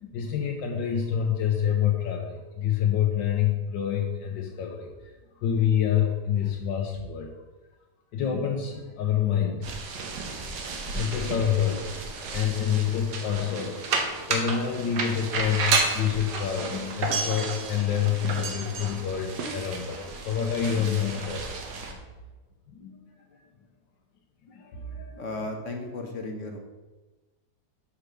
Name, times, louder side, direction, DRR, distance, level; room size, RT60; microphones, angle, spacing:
voice 1, 0.0-7.3 8.1-9.7 10.8-21.7 21.9-22.0 22.7-23.0 23.3-23.4 24.4-25.2, left 9 dB, 85° left, 1 dB, 1.4 m, -27 dB
sound 1, 9.6-21.9, right 4 dB, 70° right, 1.5 m, -32 dB
voice 2, 25.2-26.6, left 2 dB, 55° left, 3 dB, 1.0 m, -34 dB
5.7 x 4.9 x 6.4 m, 1.2 s
omnidirectional pair, 2.0 m